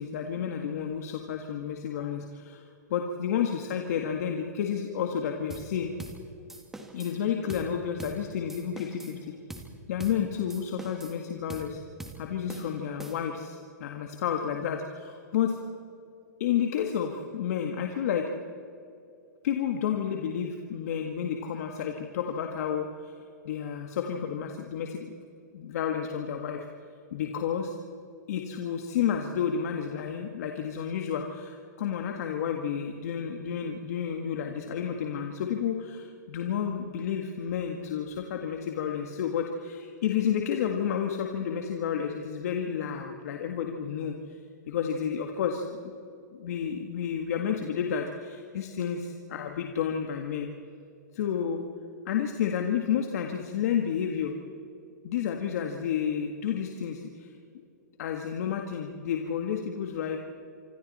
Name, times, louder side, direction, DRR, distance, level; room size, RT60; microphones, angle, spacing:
voice 1, 0.0-2.6 2.9-5.9 6.9-9.3 9.9-11.8 12.2-15.6 16.4-18.3 19.4-23.1 23.4-25.1 25.5-26.7 27.1-27.7 28.3-44.1 44.7-46.0 46.3-50.5 51.1-51.7 52.1-54.3 55.0-57.3 58.0-60.2, left 8 dB, 55° left, 3 dB, 1.9 m, -31 dB
sound 1, 5.5-5.7 6.0-6.2 6.5-7.2 7.5-7.7 8.0-8.2 8.5-9.2 9.5-9.7 10.0-10.2 10.5-11.2 11.5-11.7 12.0-12.2 12.5-13.4, right 2 dB, 5° right, 2.0 m, -43 dB
26.0 x 25.5 x 4.3 m, 2.6 s
hypercardioid pair, 150°, 10 cm